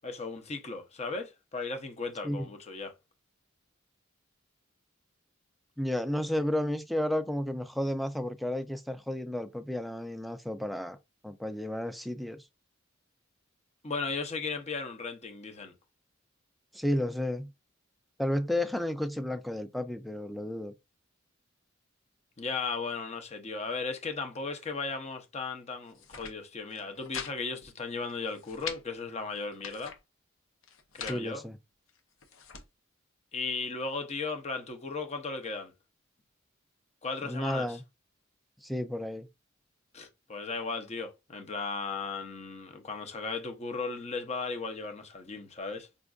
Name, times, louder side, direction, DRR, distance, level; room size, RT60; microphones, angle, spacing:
voice 1, 0.0-2.9 13.8-15.7 22.4-30.0 30.9-31.4 33.3-35.7 37.0-37.8 39.9-45.9, left 4 dB, 35° left, 0.7 m, -36 dB
voice 2, 5.8-11.0 11.2-12.4 16.7-17.5 18.2-20.7 31.1-31.6 37.3-37.8 38.6-39.3, left 1 dB, ahead, 0.3 m, -32 dB
sound 1, 25.8-26.3 26.7-27.3 27.6-27.7 28.1-28.8 29.4-30.0 30.6-31.2 31.9-32.6, left 7 dB, 80° left, 0.7 m, -42 dB
5.1 x 2.4 x 2.3 m
head